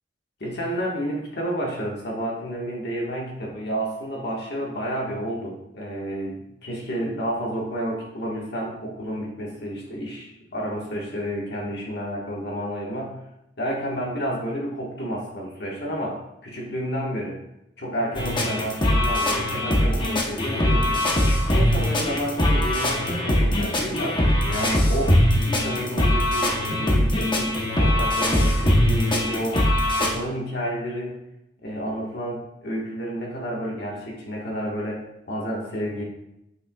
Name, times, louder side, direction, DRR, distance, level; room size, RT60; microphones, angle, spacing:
voice 1, 0.4-13.2 13.6-17.4 17.8-21.1 21.5-29.7 30.0-31.2 31.6-36.0, equal, 65° left, -3 dB, 1.6 m, -30 dB
sound 1, 18.1-30.1, left 1 dB, 25° left, 1.0 m, -21 dB
8.0 x 6.6 x 2.4 m, 0.85 s
head